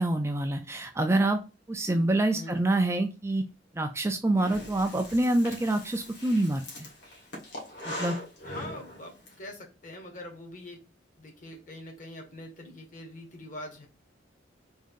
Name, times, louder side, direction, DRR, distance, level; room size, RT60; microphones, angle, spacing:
voice 1, 0.0-1.4 1.7-3.4 3.7-6.9 7.9-8.2, right 2 dB, 15° right, 5 dB, 0.3 m, -26 dB
Breathing, 4.4-9.3, left 1 dB, 60° left, 1.4 m, -41 dB
voice 2, 8.4-10.8 11.2-13.9, left 1 dB, 45° left, 2 dB, 1.1 m, -43 dB
3.6 x 2.6 x 3.6 m, 0.31 s
head